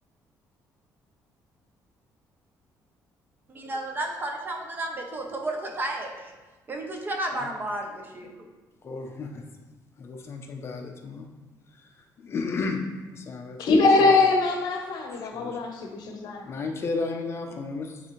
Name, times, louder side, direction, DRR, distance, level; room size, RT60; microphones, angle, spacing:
voice 1, 3.5-6.3 6.7-8.5, right 1 dB, 30° right, 2 dB, 0.8 m, -32 dB
voice 2, 8.8-9.4 10.0-11.3 11.7-12.8 13.1-13.6 15.3-15.6 16.4-18.0, left 4 dB, 35° left, 3 dB, 0.7 m, -33 dB
voice 3, 13.6-16.5, left 3 dB, 75° left, 3 dB, 0.8 m, -22 dB
9.4 x 3.3 x 3.2 m, 1.2 s
cardioid pair, 145°, 7 cm